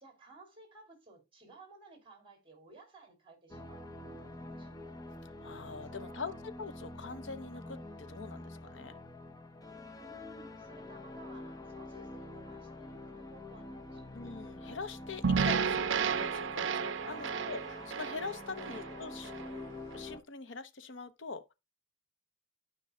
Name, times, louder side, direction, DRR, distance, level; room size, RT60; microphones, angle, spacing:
voice 1, 0.0-4.9 5.9-6.4 9.9-14.1 17.0-17.4 18.6-18.9, right 2 dB, 30° right, 3.1 m, -57 dB
sound 1, 3.5-20.2, left 2 dB, 20° left, 0.9 m, -47 dB
voice 2, 5.4-9.0 14.1-15.9 16.2-19.3 19.9-21.5, left 4 dB, 75° left, 0.8 m, -43 dB
sound 2, 15.2-19.5, right 6 dB, 80° right, 0.5 m, -32 dB
12.5 x 5.4 x 2.3 m
head